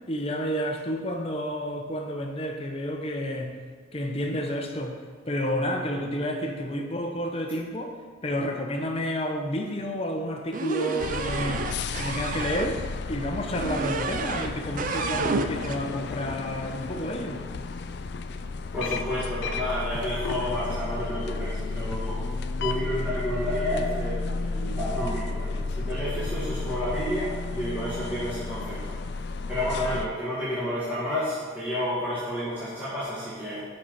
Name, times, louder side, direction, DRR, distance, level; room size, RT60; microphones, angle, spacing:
voice 1, 0.1-3.6 3.9-5.0 5.3-7.9 8.2-11.7 12.0-12.8 13.1-17.4, equal, 30° left, 3 dB, 0.7 m, -30 dB
sound 1, 10.5-12.7 13.5-14.5 14.8-15.8, right 4 dB, 40° right, 0.3 m, -30 dB
sound 2, 11.0-30.1, left 3 dB, 55° left, 0.3 m, -32 dB
voice 2, 18.7-22.2 22.6-29.0 29.5-33.6, equal, 10° right, -13 dB, 1.9 m, -30 dB
6.2 x 5.4 x 5.7 m, 1.5 s
head